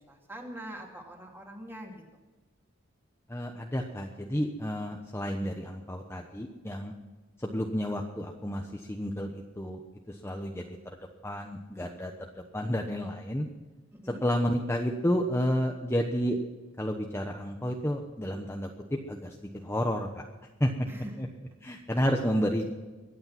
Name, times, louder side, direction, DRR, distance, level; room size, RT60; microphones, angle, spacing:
voice 1, 0.0-1.9 14.0-14.2 20.9-21.3, equal, 10° right, 0 dB, 2.7 m, -43 dB
voice 2, 3.3-6.9 7.4-9.8 10.1-11.0 11.2-12.1 12.5-13.5 14.2-16.4 16.8-20.3 20.6-20.7 21.2-21.3 21.6-22.7, equal, 15° left, 2 dB, 1.0 m, -31 dB
23.5 x 8.8 x 5.9 m, 1.2 s
head